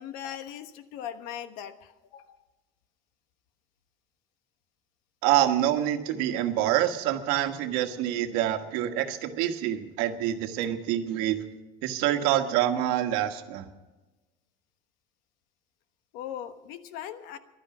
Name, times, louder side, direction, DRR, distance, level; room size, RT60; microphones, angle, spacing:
voice 1, 0.0-2.4 16.1-17.4, left 10 dB, 65° left, 10 dB, 1.2 m, -39 dB
voice 2, 5.2-11.4 11.8-13.6, right 12 dB, 75° right, 6 dB, 1.5 m, -26 dB
16.0 x 12.0 x 6.1 m, 1.1 s
cardioid pair, 175°, 16 cm